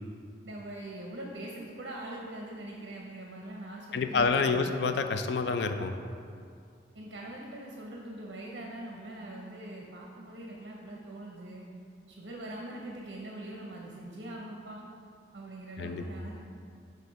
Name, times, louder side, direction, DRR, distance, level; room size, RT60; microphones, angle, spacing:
voice 1, 0.4-4.8 6.9-11.6 12.1-14.8 15.3-16.3, right 1 dB, 65° right, -1 dB, 0.7 m, -42 dB
voice 2, 3.9-6.0 15.8-16.0, left 4 dB, 70° left, 7 dB, 0.4 m, -28 dB
6.6 x 3.2 x 5.2 m, 2.3 s
head